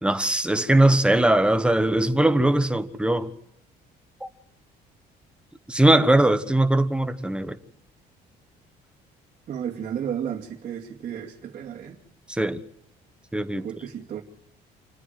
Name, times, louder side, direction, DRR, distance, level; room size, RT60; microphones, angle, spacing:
voice 1, 0.0-3.3 4.2-4.3 5.7-7.6 12.3-12.6 13.3-13.7, right 1 dB, 5° right, 1.4 m, -20 dB
voice 2, 9.5-12.0 13.6-14.2, right 9 dB, 50° right, 2.7 m, -33 dB
28.5 x 9.8 x 9.5 m
cardioid pair, 110°, 17 cm